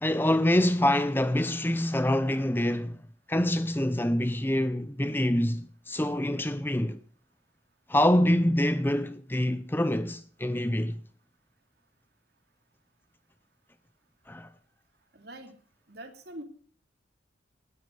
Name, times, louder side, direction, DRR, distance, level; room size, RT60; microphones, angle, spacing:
voice 1, 0.0-3.0 3.3-7.0 7.9-11.0 14.3-14.5, left 1 dB, 10° left, 0.6 m, -26 dB
voice 2, 15.1-15.6 15.9-16.4, right 1 dB, 55° right, 3.0 m, -43 dB
18.5 x 12.5 x 4.8 m
head